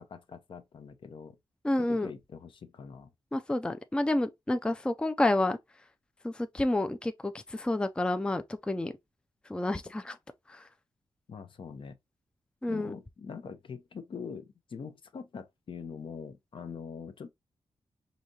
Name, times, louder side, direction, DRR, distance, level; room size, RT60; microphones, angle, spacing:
voice 1, 0.0-1.4 1.9-3.1 11.3-12.0 12.7-17.3, left 6 dB, 60° left, 0.7 m, -43 dB
voice 2, 1.6-2.1 3.3-5.6 6.2-8.9 9.5-10.2 10.5-10.6 12.6-12.9, left 1 dB, 10° left, 0.4 m, -29 dB
5.0 x 2.7 x 2.8 m
cardioid pair, 80°, 10 cm